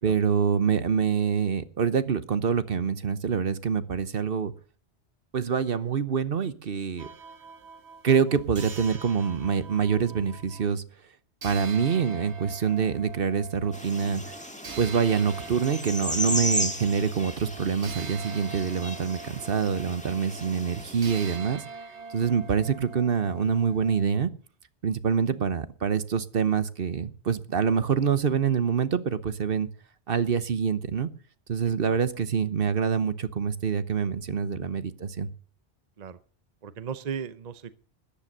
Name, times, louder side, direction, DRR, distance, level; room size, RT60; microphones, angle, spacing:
voice 1, 0.0-4.5 5.3-7.1 8.0-10.8 11.4-14.3 14.8-21.6 22.1-24.3 24.8-29.7 30.1-31.1 31.5-35.3, right 6 dB, 60° right, 1.1 m, -26 dB
sound 1, 7.0-10.7 11.4-24.1, right 5 dB, 80° right, 1.6 m, -44 dB
sound 2, 13.7-21.4, left 1 dB, 5° left, 1.6 m, -35 dB
voice 2, 36.6-37.8, right 7 dB, 45° right, 0.8 m, -36 dB
13.5 x 10.5 x 6.6 m
omnidirectional pair, 1.1 m